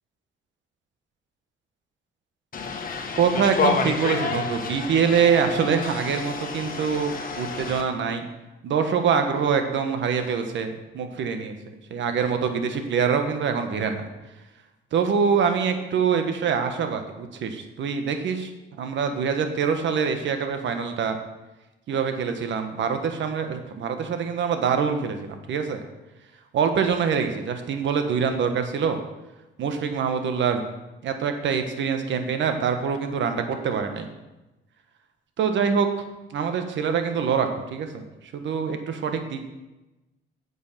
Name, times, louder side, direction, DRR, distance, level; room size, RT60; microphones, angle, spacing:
sound 1, 2.5-7.8, left 5 dB, 45° left, 1.4 m, -29 dB
voice 1, 3.1-8.3 8.6-11.6 11.9-14.1 14.9-18.5 18.8-21.2 21.9-25.8 26.5-29.0 29.6-30.6 31.0-34.1 35.4-35.9 36.3-38.0 38.3-39.4, right 6 dB, 70° right, 7 dB, 1.3 m, -24 dB
8.9 x 7.1 x 5.8 m, 1.0 s
cardioid pair, 90°, 20 cm